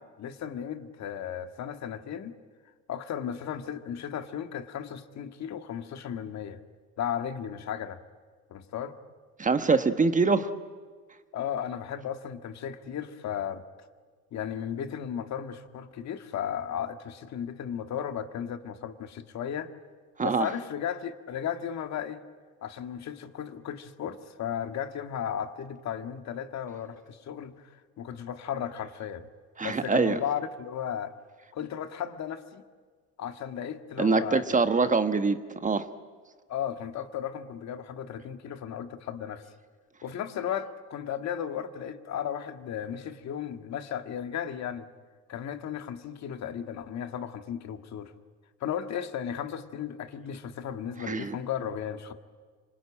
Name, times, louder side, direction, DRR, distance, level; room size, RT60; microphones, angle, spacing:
voice 1, 0.0-2.3 2.9-6.6 7.0-8.0 8.5-8.9 11.3-13.6 14.3-19.7 20.2-22.2 22.6-27.5 28.0-29.3 29.6-31.1 31.5-32.6 33.2-34.7 36.5-39.4 40.0-44.8 45.3-48.1 48.6-52.1, left 9 dB, 50° left, 8 dB, 1.9 m, -35 dB
voice 2, 9.4-10.5 20.2-20.5 29.6-30.2 34.0-35.9 51.0-51.4, right 4 dB, 20° right, 9 dB, 1.3 m, -24 dB
26.0 x 24.5 x 8.9 m, 1.5 s
supercardioid pair, 100°, 36 cm